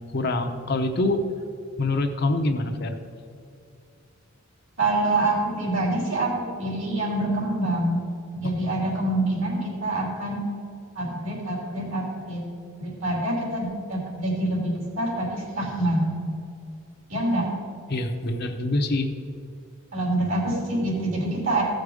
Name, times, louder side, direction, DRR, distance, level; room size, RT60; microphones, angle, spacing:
voice 1, 0.1-1.2 1.8-3.0 17.9-19.1, left 2 dB, 50° left, 5 dB, 0.8 m, -25 dB
voice 2, 4.8-8.0 8.3-10.4 10.9-12.4 12.8-16.1 17.1-17.5 19.9-21.6, right 1 dB, 70° right, -2 dB, 3.1 m, -26 dB
15.0 x 6.6 x 4.9 m, 2.4 s
head